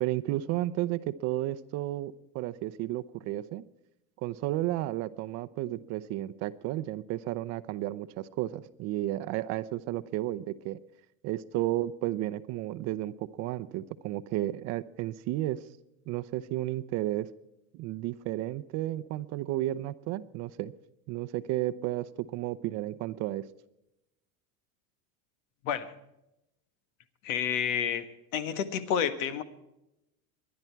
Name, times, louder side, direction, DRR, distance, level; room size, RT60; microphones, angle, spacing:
voice 1, 0.0-3.6 4.2-10.8 11.2-15.6 16.1-17.3 17.7-20.7 21.1-23.4, right 15 dB, 40° right, 14 dB, 0.7 m, -32 dB
voice 2, 27.2-28.1 28.3-29.4, left 8 dB, 75° left, 11 dB, 1.7 m, -29 dB
23.5 x 10.5 x 4.6 m, 0.87 s
supercardioid pair, 150°, 39 cm